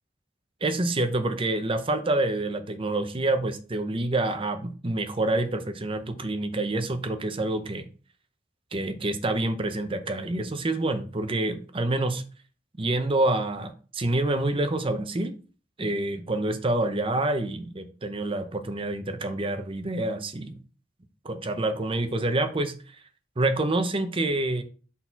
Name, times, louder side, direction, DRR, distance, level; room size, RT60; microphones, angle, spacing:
voice 1, 0.6-7.9 8.7-12.2 12.8-15.3 15.8-20.5 21.2-22.7 23.4-24.6, right 2 dB, 30° right, 0.7 m, -27 dB
4.2 x 4.2 x 5.6 m
head